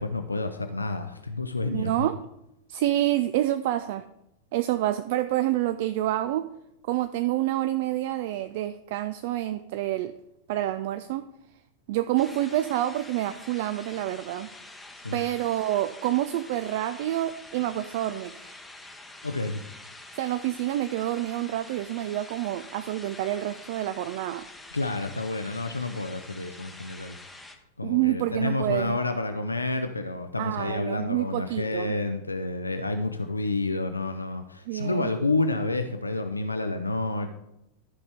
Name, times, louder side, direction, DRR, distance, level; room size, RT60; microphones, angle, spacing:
voice 1, 0.0-1.9 15.0-15.2 19.2-19.6 24.7-27.2 27.8-37.3, left 2 dB, 80° left, 7 dB, 0.5 m, -29 dB
voice 2, 1.7-2.2 2.7-4.0 4.5-6.5 6.8-10.1 10.5-11.3 11.9-14.5 15.1-18.5 20.2-24.5 27.8-29.0 30.4-31.9 34.7-35.1, right 14 dB, 50° right, 11 dB, 0.3 m, -28 dB
sound 1, 12.2-27.5, left 2 dB, 5° left, 0.8 m, -46 dB
13.0 x 5.2 x 3.4 m, 0.87 s
figure-of-eight pair, 90°, 0 cm